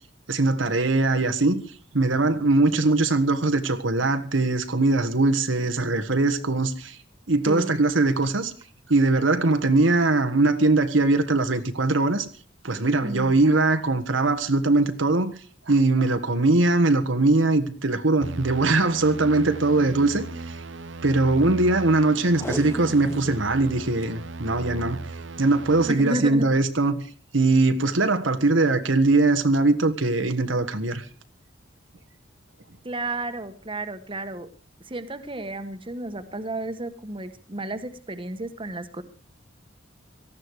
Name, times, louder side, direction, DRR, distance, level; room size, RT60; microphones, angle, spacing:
voice 1, 0.3-1.6 1.9-7.0 7.3-8.5 8.9-12.3 12.6-15.3 15.7-20.6 21.0-25.0 25.4-27.0 27.3-31.0, right 2 dB, 90° right, 1.5 m, -21 dB
voice 2, 13.0-13.4 25.8-26.5 32.8-34.5 34.8-39.0, right 2 dB, 25° right, 1.3 m, -32 dB
sound 1, 18.2-25.9, right 3 dB, 70° right, 0.8 m, -37 dB
Packing tape duct tape, 22.3-23.4 23.8-23.9 24.0-24.1 24.7-25.0 26.0-26.3 26.8-26.9, equal, 15° left, 0.9 m, -37 dB
18.0 x 14.5 x 4.8 m
head